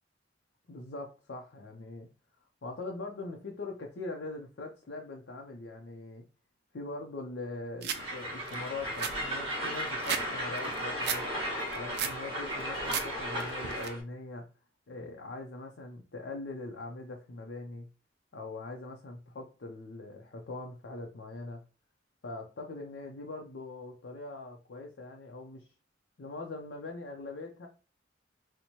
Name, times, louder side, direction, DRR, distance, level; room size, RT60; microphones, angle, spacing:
voice 1, 0.7-2.1 2.6-6.3 6.7-11.3 11.7-14.5 14.9-17.9 18.3-21.6 22.2-25.7 26.2-27.7, left 2 dB, 70° left, 0 dB, 0.6 m, -42 dB
sound 1, 7.8-8.0 8.5-8.6 8.8-10.3 10.6-11.2 11.6-12.2 12.6-13.1 13.4-13.9, right 8 dB, 60° right, 0.4 m, -34 dB
Train, 7.9-14.0, equal, 30° right, 1.4 m, -35 dB
4.3 x 2.1 x 2.8 m, 0.33 s
head